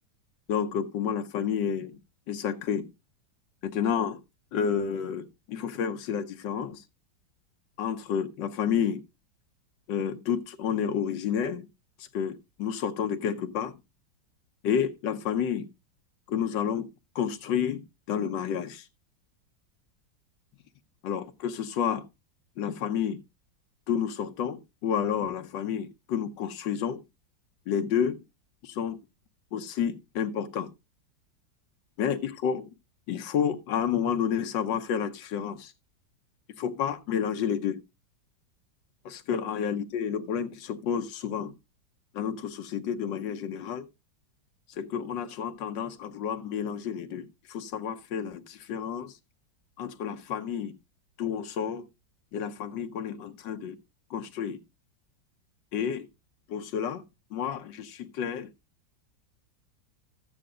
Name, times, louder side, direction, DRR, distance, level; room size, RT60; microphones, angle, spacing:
voice 1, 0.5-2.0 2.3-2.9 3.6-4.2 4.5-6.8 7.8-9.0 9.9-11.7 12.0-13.8 14.6-15.6 16.3-16.9 17.1-18.9 21.0-22.0 22.6-23.2 23.9-27.0 27.7-28.2 28.6-29.0 29.5-30.7 32.0-32.7 33.1-35.7 36.6-37.8 39.0-41.5 42.1-43.8 44.8-49.2 49.8-50.7 51.2-51.9 52.3-53.8 54.1-54.6 55.7-56.1 56.5-57.0 57.3-58.5, left 8 dB, 75° left, 1.5 m, -30 dB
13.5 x 9.0 x 2.4 m
omnidirectional pair, 2.0 m